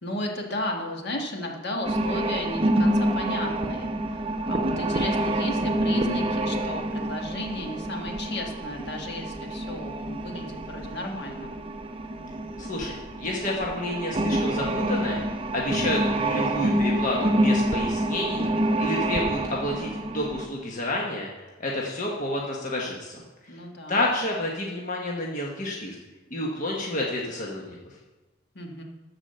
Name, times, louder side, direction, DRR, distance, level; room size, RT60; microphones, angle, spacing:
voice 1, 0.0-11.6 23.5-24.0 28.5-28.8, left 1 dB, 55° left, 1 dB, 1.6 m, -34 dB
sound 1, 1.8-20.5, right 1 dB, 30° right, 0.7 m, -27 dB
voice 2, 12.6-15.2 15.5-21.3 21.6-23.2 23.9-25.9 26.3-27.8, left 1 dB, 40° left, -2 dB, 1.3 m, -29 dB
13.0 x 4.9 x 6.9 m, 1.1 s
head